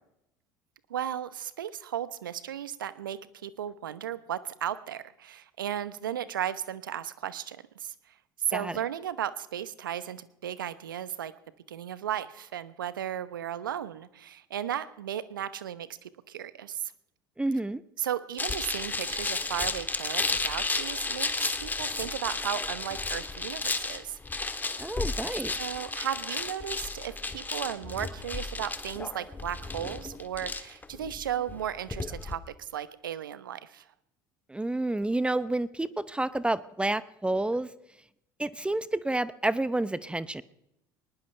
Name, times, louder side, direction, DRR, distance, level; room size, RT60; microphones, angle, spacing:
voice 1, 0.9-7.9 8.5-11.3 11.7-16.9 18.0-24.2 25.0-25.1 25.6-33.9, right 10 dB, 85° right, 15 dB, 0.9 m, -35 dB
voice 2, 17.4-17.8 24.8-25.5 34.5-37.7 38.4-40.4, right 2 dB, 10° right, 16 dB, 0.8 m, -29 dB
sound 1, 18.4-32.3, left 3 dB, 15° left, 1.6 m, -33 dB
21.0 x 19.5 x 3.3 m, 0.81 s
hypercardioid pair, 70°, 11 cm